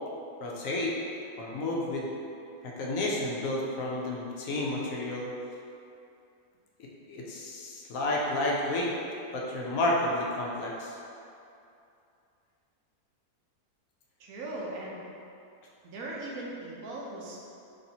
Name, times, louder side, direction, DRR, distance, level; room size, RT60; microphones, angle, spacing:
voice 1, 0.4-0.9 1.4-2.1 2.6-5.3 6.8-8.9 9.3-11.0, left 1 dB, 70° left, -3 dB, 0.9 m, -31 dB
voice 2, 14.2-15.0 15.8-17.4, right 2 dB, 75° right, -3 dB, 1.1 m, -38 dB
4.0 x 3.2 x 2.8 m, 2.6 s
omnidirectional pair, 1.6 m